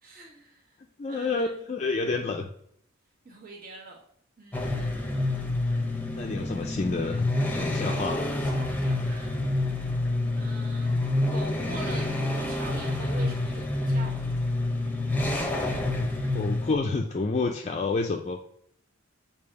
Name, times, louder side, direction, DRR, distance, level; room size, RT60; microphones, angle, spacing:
voice 1, 0.0-0.8 1.1-1.6 3.2-4.0 4.4-5.0 7.7-9.3 10.4-14.1, right 3 dB, 45° right, -2 dB, 1.3 m, -45 dB
voice 2, 1.0-2.5 6.2-7.3 7.5-8.4 16.3-18.4, left 3 dB, 35° left, 2 dB, 0.4 m, -29 dB
sound 1, 4.5-16.7, left 2 dB, 10° left, 0.8 m, -28 dB
6.7 x 2.8 x 5.1 m, 0.69 s
head